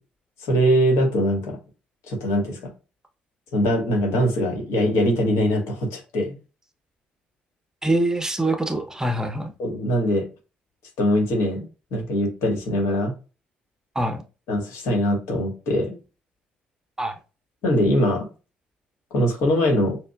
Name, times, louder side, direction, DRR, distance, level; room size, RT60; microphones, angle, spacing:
voice 1, 0.4-1.6 2.1-2.7 3.5-6.4 9.6-10.3 11.0-13.1 14.5-16.0 17.6-18.3 19.1-20.0, equal, 65° left, 2 dB, 1.4 m, -22 dB
voice 2, 7.8-9.5 13.9-14.2 17.0-17.2, right 1 dB, 10° right, 6 dB, 0.7 m, -24 dB
6.5 x 2.2 x 2.3 m, 0.32 s
figure-of-eight pair, 50°, 5 cm